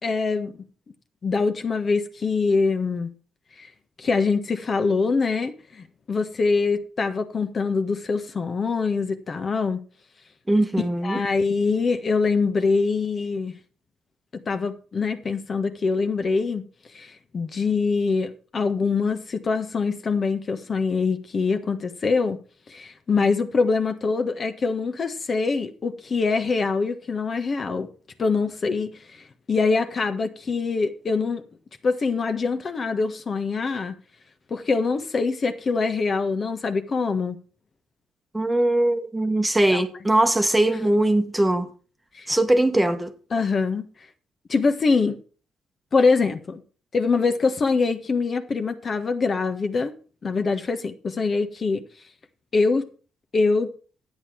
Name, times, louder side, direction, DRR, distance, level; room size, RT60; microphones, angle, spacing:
voice 1, 0.0-0.6 1.2-3.1 3.6-3.7 4.0-9.8 11.0-13.5 14.3-16.6 16.9-22.4 22.7-27.9 28.2-31.4 31.8-33.9 34.5-37.4 39.7-39.8 42.1-42.3 43.3-43.9 44.5-45.2 45.9-46.6 46.9-49.9 50.2-51.8 52.5-52.9 53.3-53.7, left 4 dB, 40° left, 1.4 m, -24 dB
voice 2, 10.5-11.2 38.3-41.7 42.3-43.1, right 1 dB, 10° right, 1.3 m, -21 dB
11.0 x 8.7 x 4.7 m
cardioid pair, 90°, 0 cm